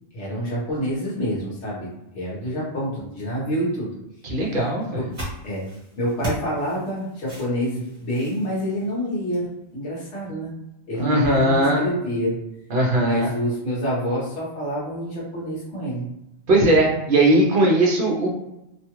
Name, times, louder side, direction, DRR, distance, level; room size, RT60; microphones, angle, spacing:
voice 1, 0.1-3.9 5.0-5.1 5.4-5.7 6.0-10.5 10.9-12.4 13.0-16.1, equal, 60° left, -6 dB, 1.3 m, -27 dB
voice 2, 4.3-5.0 11.0-11.8 12.7-13.3 16.5-18.3, right 1 dB, 50° right, -2 dB, 0.8 m, -19 dB
sound 1, 4.8-9.5, right 1 dB, 25° right, 1.1 m, -37 dB
3.0 x 2.3 x 3.0 m, 0.87 s
omnidirectional pair, 1.3 m